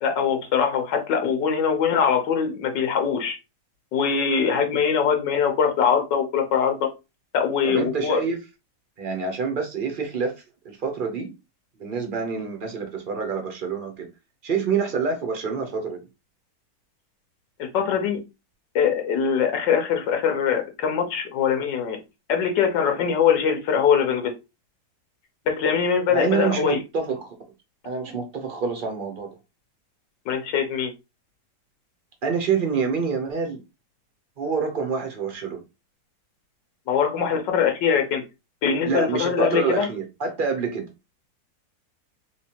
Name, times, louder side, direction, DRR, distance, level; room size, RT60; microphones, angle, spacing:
voice 1, 0.0-3.4 3.9-6.9 7.3-8.2 17.7-18.2 18.7-22.0 22.3-24.3 25.5-26.8 30.3-30.9 36.9-38.2 38.6-39.9, left 7 dB, 85° left, 1.5 m, -22 dB
voice 2, 7.6-8.4 9.0-10.4 10.6-11.3 11.8-14.1 14.4-16.0 26.1-27.3 27.8-29.3 32.2-33.6 34.4-35.6 38.8-40.9, right 5 dB, 50° right, 0.6 m, -27 dB
3.3 x 3.2 x 2.8 m
omnidirectional pair, 1.9 m